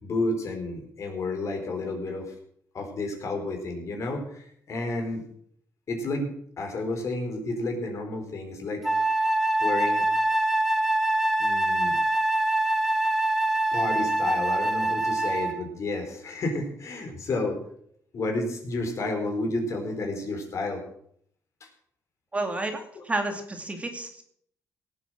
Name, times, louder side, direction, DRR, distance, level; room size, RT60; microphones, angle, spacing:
voice 1, 0.0-2.3 2.7-5.2 5.9-6.3 6.6-8.9 9.6-10.0 11.4-12.0 13.7-17.6 18.1-20.8 21.6-21.7, left 2 dB, 55° left, 3 dB, 4.3 m, -31 dB
Wind instrument woodwind instrument, 8.8-15.6, right 2 dB, 5° right, 1.5 m, -24 dB
voice 2, 22.3-24.2, right 2 dB, 20° right, 4 dB, 2.5 m, -31 dB
18.0 x 8.0 x 6.4 m, 0.65 s
cardioid pair, 110°, 6 cm